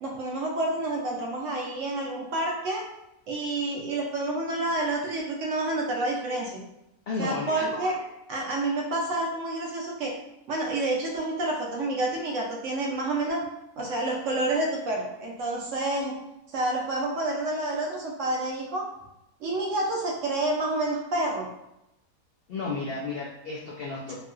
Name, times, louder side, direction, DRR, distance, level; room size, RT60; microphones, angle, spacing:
voice 1, 0.0-2.9 3.3-6.6 7.2-10.1 10.5-13.4 13.8-16.1 16.5-18.9 19.4-21.5, right 2 dB, 65° right, -1 dB, 0.8 m, -29 dB
voice 2, 7.1-7.6 22.5-24.2, left 3 dB, 85° left, -4 dB, 0.5 m, -32 dB
3.1 x 2.7 x 2.4 m, 0.87 s
omnidirectional pair, 1.6 m